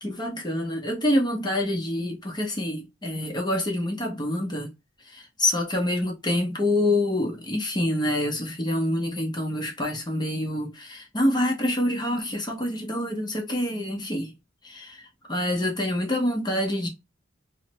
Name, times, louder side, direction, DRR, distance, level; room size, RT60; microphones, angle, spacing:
voice 1, 0.0-4.7 5.1-14.3 14.6-16.9, left 1 dB, 20° left, 0.8 m, -26 dB
3.1 x 2.1 x 2.9 m
head